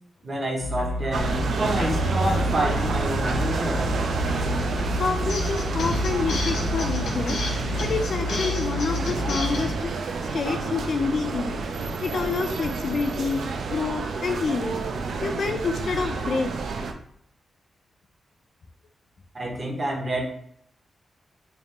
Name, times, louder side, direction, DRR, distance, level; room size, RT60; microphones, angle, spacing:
voice 1, 0.2-3.9 19.3-20.2, right 1 dB, 30° right, -1 dB, 0.9 m, -28 dB
sound 1, 0.6-9.7, left 1 dB, 80° left, 0.8 m, -29 dB
sound 2, 1.1-16.9, right 4 dB, 65° right, 0.4 m, -29 dB
voice 2, 5.0-7.4 7.8-9.9 10.3-11.6 12.0-13.4 13.7-14.8 15.2-16.5, left 4 dB, 50° left, 6 dB, 0.3 m, -27 dB
3.4 x 2.4 x 4.1 m, 0.65 s
wide cardioid pair, 175°, 0 cm